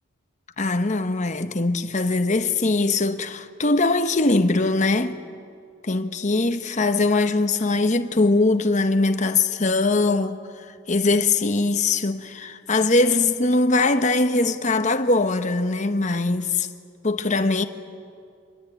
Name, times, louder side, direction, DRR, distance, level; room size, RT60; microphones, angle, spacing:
voice 1, 0.6-5.2 5.8-16.7 17.0-17.6, left 3 dB, 35° left, 0.9 m, -21 dB
25.0 x 21.5 x 9.1 m
head